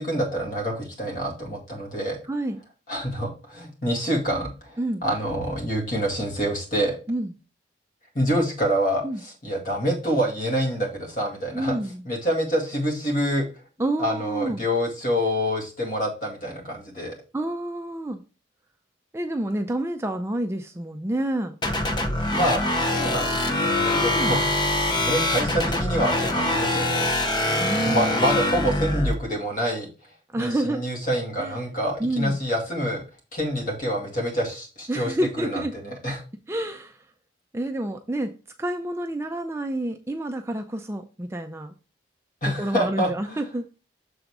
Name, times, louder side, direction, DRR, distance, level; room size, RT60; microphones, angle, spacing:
voice 1, 0.0-2.2 2.9-7.0 8.1-11.8 12.0-13.5 14.0-17.2 22.3-24.4 24.9-27.1 27.9-29.9 30.4-33.0 33.3-36.2 42.4-43.4, equal, 45° left, 0 dB, 2.2 m, -27 dB
voice 2, 2.3-2.6 4.8-5.0 7.1-7.3 9.0-9.2 11.5-12.0 13.8-14.6 17.3-18.2 19.1-21.6 23.9-24.4 27.6-28.4 30.3-30.8 31.4-31.6 32.0-32.4 34.9-35.7 36.5-37.0 37.5-38.3 38.6-41.7 42.6-43.7, right 1 dB, 15° right, 5 dB, 0.4 m, -28 dB
sound 1, 21.6-29.1, left 1 dB, 25° left, 0.6 m, -24 dB
7.0 x 3.9 x 4.7 m, 0.33 s
head